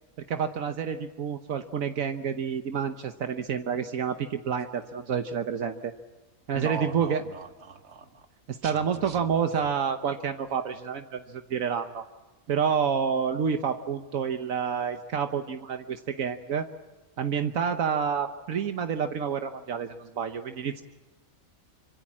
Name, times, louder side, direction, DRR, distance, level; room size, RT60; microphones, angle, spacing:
voice 1, 0.3-5.9 6.5-7.2 8.5-12.0 12.5-16.7 17.2-20.8, right 7 dB, 75° right, 7 dB, 1.4 m, -29 dB
voice 2, 6.5-8.3 8.6-9.3, right 4 dB, 55° right, 7 dB, 2.0 m, -39 dB
26.0 x 25.5 x 7.4 m, 1.2 s
omnidirectional pair, 1.4 m